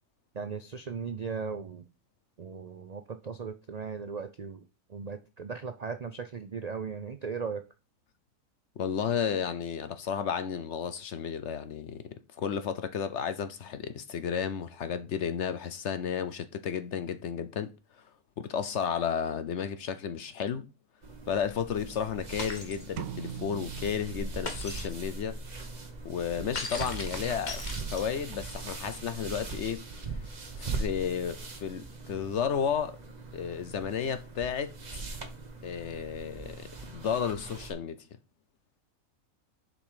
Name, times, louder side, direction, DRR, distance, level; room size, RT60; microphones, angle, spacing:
voice 1, 0.3-1.9 2.4-4.6 4.9-7.6, right 5 dB, 60° right, 0.4 m, -37 dB
voice 2, 8.8-17.7 18.4-20.7 21.3-25.4 26.0-30.1 30.6-33.0 33.3-34.7 35.6-38.0, left 7 dB, 60° left, 0.9 m, -33 dB
sound 1, 21.0-37.7, right 3 dB, 30° right, 1.2 m, -40 dB
Shatter, 22.4-22.8 24.5-24.9 26.6-28.3, left 3 dB, 30° left, 1.2 m, -38 dB
sound 2, 23.0-24.9, right 9 dB, 90° right, 1.1 m, -41 dB
7.1 x 5.3 x 4.9 m
omnidirectional pair, 1.6 m